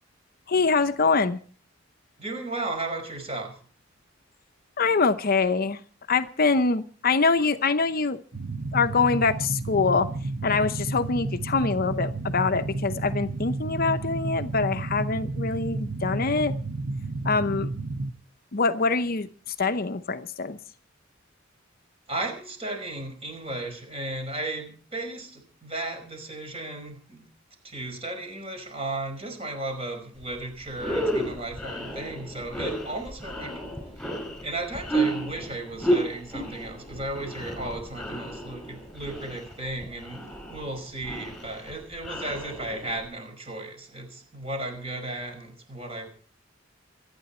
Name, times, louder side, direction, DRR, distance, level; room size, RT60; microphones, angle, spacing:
voice 1, 0.5-1.4 4.8-5.8 6.1-8.2 8.7-10.1 10.4-16.5 17.2-17.7 18.5-20.6, left 4 dB, 45° left, 10 dB, 0.7 m, -24 dB
voice 2, 2.2-3.6 22.1-27.3 27.6-33.6 34.4-46.1, right 2 dB, 30° right, 5 dB, 5.2 m, -35 dB
sound 1, 8.3-18.1, right 2 dB, 60° right, 1.1 m, -31 dB
sound 2, 30.2-30.3 30.7-43.1, right 1 dB, 5° left, 5.3 m, -32 dB
26.0 x 9.7 x 4.3 m, 0.43 s
head